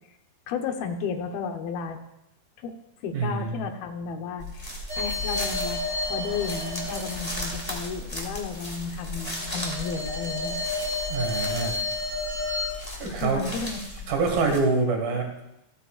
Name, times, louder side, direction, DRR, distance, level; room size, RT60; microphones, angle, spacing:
voice 1, 0.5-2.0 2.6-5.8 6.1-10.6 13.0-14.1, left 5 dB, 90° left, 5 dB, 2.9 m, -33 dB
voice 2, 3.1-3.7 11.1-11.8 12.9-13.5 14.1-15.4, right 3 dB, 80° right, 2 dB, 3.8 m, -26 dB
sound 1, 4.4-14.6, left 1 dB, 10° left, 1.6 m, -36 dB
sound 2, 4.9-8.2 8.8-12.7, left 2 dB, 35° right, 3.2 m, -31 dB
27.5 x 9.3 x 2.5 m, 0.87 s
omnidirectional pair, 4.1 m